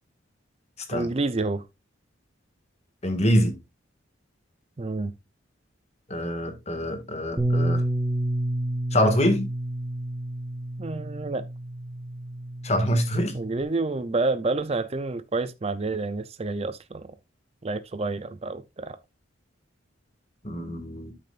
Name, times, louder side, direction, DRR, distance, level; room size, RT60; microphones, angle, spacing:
voice 1, 0.9-1.6 4.8-5.1 10.8-11.5 13.3-17.1 17.6-19.0, right 3 dB, 30° right, 0.5 m, -29 dB
voice 2, 3.0-3.5 6.1-7.8 8.9-9.4 12.6-13.3 20.4-21.1, equal, 35° left, 1.9 m, -24 dB
Bass guitar, 7.4-13.6, right 1 dB, 10° right, 1.2 m, -29 dB
12.5 x 6.7 x 2.5 m
head